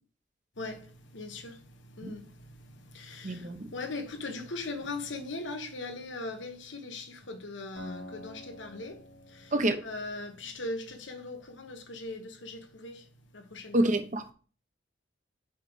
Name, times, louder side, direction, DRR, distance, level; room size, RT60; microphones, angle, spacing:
voice 1, 0.6-9.5 9.8-13.8, left 2 dB, 80° left, 1.2 m, -40 dB
voice 2, 3.2-3.7 9.5-9.8 13.7-14.3, right 1 dB, 40° right, 0.9 m, -27 dB
Acoustic guitar, 7.8-10.9, equal, 65° left, 2.1 m, -49 dB
5.7 x 5.0 x 6.3 m
head